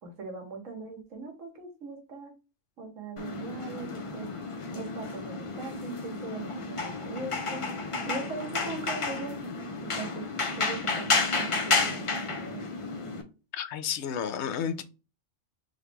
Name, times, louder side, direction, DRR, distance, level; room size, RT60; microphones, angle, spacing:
voice 1, 0.0-2.3 2.8-4.3 4.7-7.7 8.1-9.4 9.8-10.2 10.6-12.6, right 3 dB, 85° right, 1.5 m, -40 dB
sound 1, 3.2-13.2, left 3 dB, 40° left, 0.5 m, -31 dB
voice 2, 13.5-14.8, left 8 dB, 70° left, 0.8 m, -31 dB
3.8 x 3.0 x 3.3 m
omnidirectional pair, 1.3 m